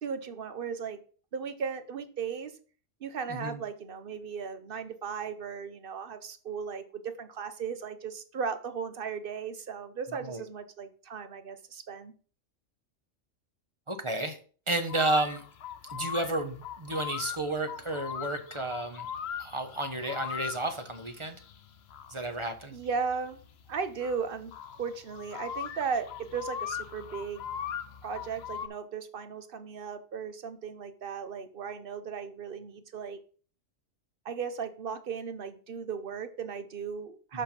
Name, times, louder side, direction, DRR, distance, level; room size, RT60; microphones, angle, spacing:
voice 1, 0.0-1.0 1.3-2.5 3.0-12.1 22.7-23.4 23.7-24.5 24.8-27.4 28.0-33.2 34.2-37.4, right 6 dB, 50° right, 11 dB, 0.9 m, -36 dB
voice 2, 13.9-14.4 14.7-15.4 15.9-19.1 19.4-21.4 22.1-22.7, right 2 dB, 30° right, 8 dB, 0.8 m, -32 dB
sound 1, 14.9-28.7, left 8 dB, 60° left, 0.8 m, -40 dB
6.7 x 5.5 x 5.2 m, 0.41 s
omnidirectional pair, 1.3 m